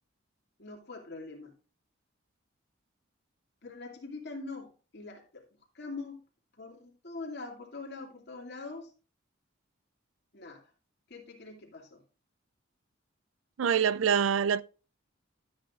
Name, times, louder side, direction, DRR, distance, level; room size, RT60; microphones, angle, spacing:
voice 1, 0.6-1.5 3.6-5.4 5.7-6.2 6.6-8.9 10.3-10.6 11.1-12.0, left 3 dB, 55° left, 2.6 m, -43 dB
voice 2, 13.6-14.6, right 7 dB, 75° right, 0.4 m, -25 dB
12.5 x 8.6 x 2.5 m
head